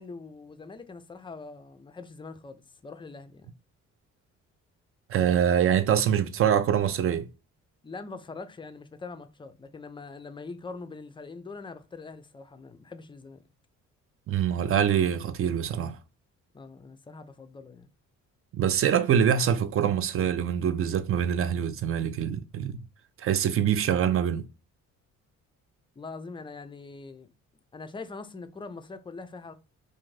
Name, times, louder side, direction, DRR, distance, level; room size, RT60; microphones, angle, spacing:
voice 1, 0.0-3.5 7.8-13.4 16.5-17.9 26.0-27.3 27.7-29.5, left 4 dB, 15° left, 0.4 m, -43 dB
voice 2, 5.1-7.3 14.3-16.0 18.5-22.8 23.2-24.4, right 9 dB, 45° right, 0.4 m, -24 dB
2.5 x 2.5 x 3.1 m
cardioid pair, 90°, 30 cm